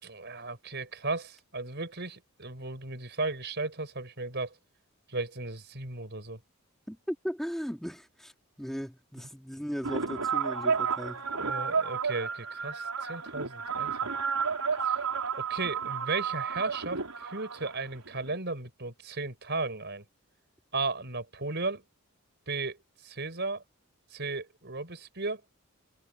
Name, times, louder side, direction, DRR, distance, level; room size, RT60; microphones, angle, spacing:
voice 1, 0.0-4.6 5.1-6.4 11.4-14.1 14.9-15.0 15.4-20.0 20.7-21.8 22.5-23.6 24.1-25.4, right 3 dB, 50° right, 5.4 m, -35 dB
voice 2, 6.9-8.3 8.6-11.2, equal, ahead, 2.9 m, -37 dB
sound 1, 9.8-18.4, right 6 dB, 90° right, 4.1 m, -31 dB
head